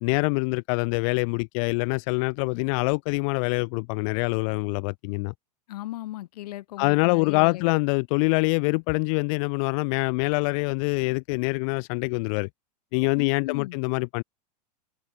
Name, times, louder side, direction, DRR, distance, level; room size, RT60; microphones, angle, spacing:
voice 1, 0.0-5.3 6.8-12.5 12.9-14.2, left 32 dB, 50° left, 0.9 m, -25 dB
voice 2, 5.7-7.7 13.2-13.8, left 15 dB, 65° left, 4.5 m, -37 dB
hypercardioid pair, 110°, 21 cm